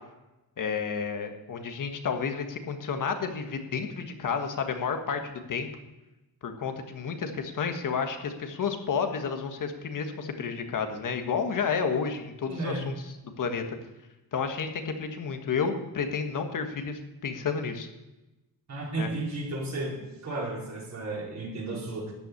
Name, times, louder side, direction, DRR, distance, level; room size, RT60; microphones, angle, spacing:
voice 1, 0.6-5.7 6.4-13.8 14.3-17.9 19.0-19.1, left 6 dB, 55° left, 6 dB, 1.6 m, -31 dB
voice 2, 12.4-12.9 18.7-22.1, right 2 dB, 45° right, -2 dB, 4.1 m, -33 dB
13.5 x 6.0 x 9.5 m, 1.0 s
cardioid pair, 130°, 38 cm